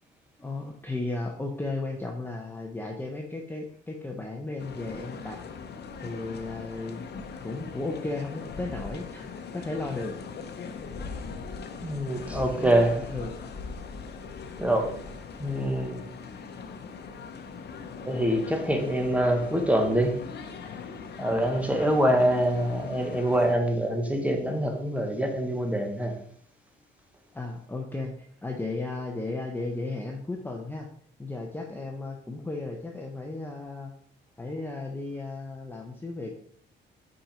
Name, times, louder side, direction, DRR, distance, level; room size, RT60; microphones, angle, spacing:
voice 1, 0.4-5.4 6.0-7.0 7.3-10.1 12.6-13.4 27.3-28.1 28.4-30.9 31.2-33.9 34.4-36.3, left 2 dB, 10° left, 0.8 m, -35 dB
sound 1, 4.6-23.6, left 5 dB, 55° left, 0.9 m, -40 dB
voice 2, 11.8-13.1 14.6-15.0 15.4-16.0 18.0-20.1 21.2-26.1, right 1 dB, 5° right, 1.3 m, -25 dB
5.3 x 5.2 x 4.4 m
cardioid pair, 90°, 20 cm